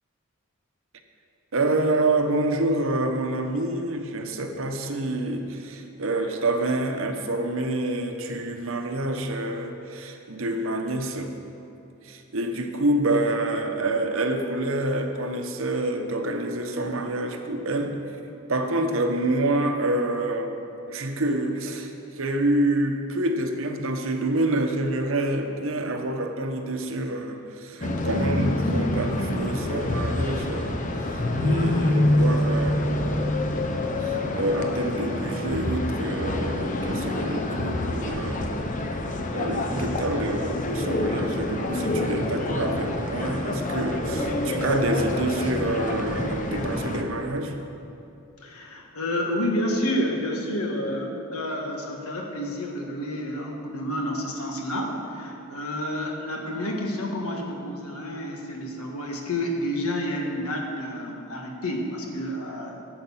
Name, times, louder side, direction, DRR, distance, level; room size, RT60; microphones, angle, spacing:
voice 1, 1.5-11.3 12.0-18.0 18.5-20.6 20.9-33.1 33.9-38.6 39.3-47.5, right 1 dB, 60° right, 5 dB, 0.9 m, -27 dB
sound 1, 27.8-47.0, left 1 dB, 35° left, 0.7 m, -26 dB
voice 2, 48.4-62.8, left 1 dB, 75° left, 1 dB, 1.5 m, -29 dB
11.0 x 7.9 x 5.6 m, 2.7 s
head